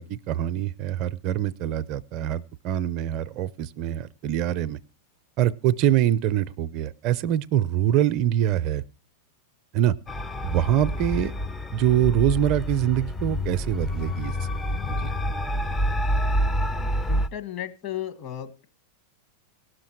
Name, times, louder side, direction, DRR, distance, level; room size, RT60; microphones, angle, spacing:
voice 1, 0.0-4.8 5.4-8.8 9.7-10.0 10.4-11.3 11.7-14.3 14.9-15.0, right 11 dB, 45° right, 16 dB, 0.5 m, -24 dB
sound 1, 10.1-17.3, equal, 15° left, 0.6 m, -27 dB
voice 2, 17.1-18.7, left 11 dB, 45° left, 6 dB, 1.7 m, -34 dB
18.0 x 6.5 x 4.5 m, 0.34 s
figure-of-eight pair, 95°, 0 cm